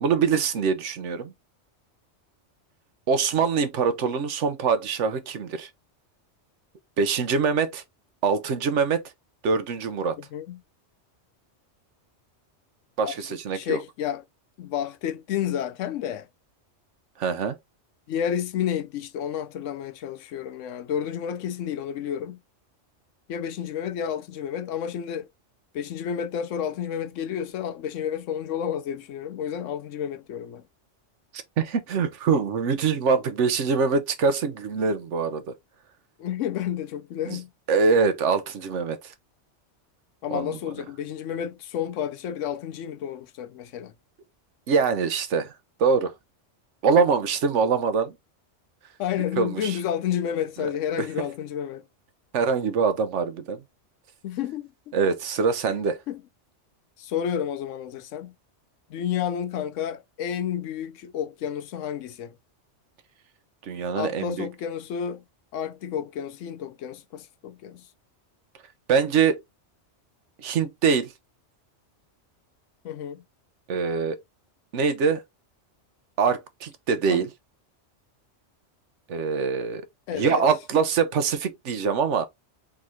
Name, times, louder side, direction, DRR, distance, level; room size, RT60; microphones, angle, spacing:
voice 1, 0.0-1.3 3.1-5.7 7.0-7.8 8.2-9.0 9.4-10.2 13.0-13.8 17.2-17.6 31.3-35.5 37.3-37.4 37.7-39.1 40.3-40.6 44.7-45.5 45.8-46.1 46.8-48.1 49.4-49.8 52.3-53.6 54.9-56.0 63.6-64.5 68.9-69.4 70.4-71.1 73.7-74.2 74.7-75.2 76.2-77.3 79.1-79.9 80.1-82.2, right 5 dB, 75° right, 1.1 m, -24 dB
voice 2, 10.2-10.6 13.0-13.2 13.5-14.2 14.6-16.3 18.1-22.4 23.3-25.3 25.7-30.7 36.2-37.5 40.2-43.9 49.0-51.8 54.2-54.9 56.1-56.2 57.0-58.3 58.9-62.4 63.9-65.2 65.5-67.9 72.8-73.2 77.1-77.2 80.1-80.5, left 9 dB, 85° left, 1.0 m, -30 dB
3.9 x 3.6 x 2.9 m
omnidirectional pair, 1.2 m